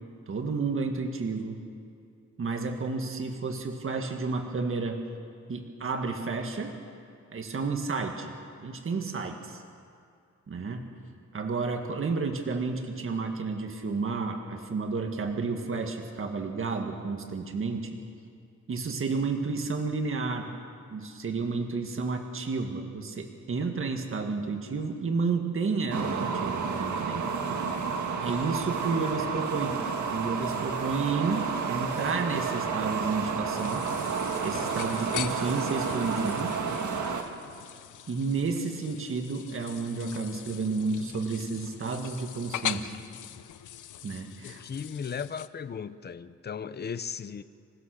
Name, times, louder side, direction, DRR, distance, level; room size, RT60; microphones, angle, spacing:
voice 1, 0.3-1.6 2.4-5.0 5.5-6.7 7.3-8.3 8.6-9.6 10.5-10.9 11.3-18.0 18.7-20.5 20.9-27.3 28.2-29.8 30.1-33.9 34.4-36.6 38.1-42.9 44.0-44.6, right 4 dB, 45° right, 4 dB, 1.9 m, -31 dB
sound 1, 25.9-37.2, right 5 dB, 75° right, 1.9 m, -31 dB
sound 2, 33.5-45.5, left 11 dB, 80° left, 0.8 m, -41 dB
voice 2, 44.4-47.4, left 6 dB, 35° left, 13 dB, 0.7 m, -36 dB
27.5 x 15.5 x 6.6 m, 2.3 s
cardioid pair, 100°, 30 cm